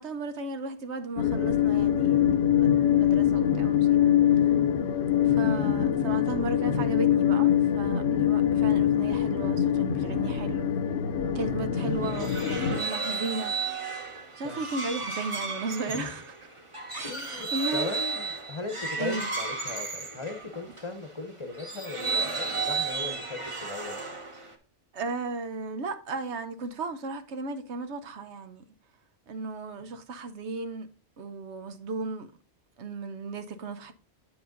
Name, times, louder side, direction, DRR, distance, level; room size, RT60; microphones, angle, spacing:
voice 1, 0.0-4.4 5.2-10.7 11.3-13.6 14.4-16.3 16.9-17.9 19.0-19.3 24.9-28.6 29.3-30.9 31.2-32.3 32.8-33.9, right 3 dB, 85° right, 1.2 m, -35 dB
sound 1, 1.2-12.8, left 10 dB, 75° left, 1.0 m, -24 dB
sound 2, 11.8-20.9 21.5-24.5, right 4 dB, 30° right, 1.2 m, -33 dB
voice 2, 15.9-16.2 17.0-24.0 29.8-29.9, left 3 dB, 30° left, 0.8 m, -38 dB
8.8 x 5.0 x 3.8 m
omnidirectional pair, 1.1 m